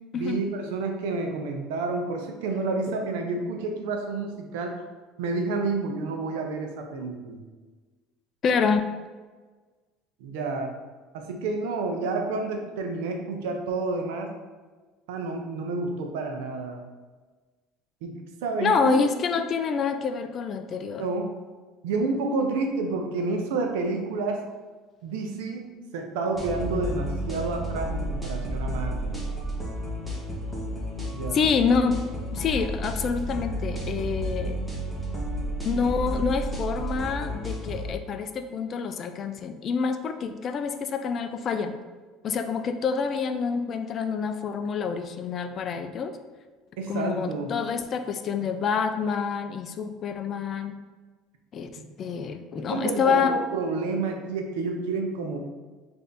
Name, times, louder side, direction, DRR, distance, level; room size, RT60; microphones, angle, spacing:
voice 1, 0.1-4.7 5.2-7.4 10.2-10.7 11.1-14.3 15.1-16.8 18.0-18.1 18.4-19.0 21.0-21.3 21.8-24.4 25.0-25.7 25.9-29.2 31.1-31.4 46.8-47.5 52.6-55.4, right 3 dB, 90° right, 3 dB, 0.6 m, -29 dB
voice 2, 8.4-8.9 18.6-21.1 31.3-32.0 32.3-34.6 35.6-41.7 42.2-46.2 46.9-50.8 51.5-51.7 52.0-53.3, left 5 dB, 40° left, 8 dB, 0.3 m, -27 dB
sound 1, 26.3-37.9, equal, 5° right, 1.0 m, -32 dB
3.3 x 2.6 x 3.9 m, 1.3 s
cardioid pair, 125°, 0 cm